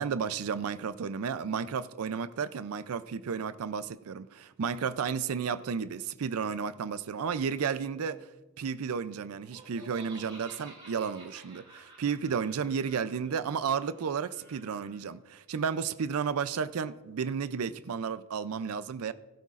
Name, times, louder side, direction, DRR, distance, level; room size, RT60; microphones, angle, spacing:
voice 1, 0.0-8.3 8.6-19.1, right 6 dB, 75° right, 0.4 m, -32 dB
Laughter, 9.4-15.0, right 2 dB, 25° right, 3.1 m, -52 dB
16.0 x 12.0 x 2.5 m
head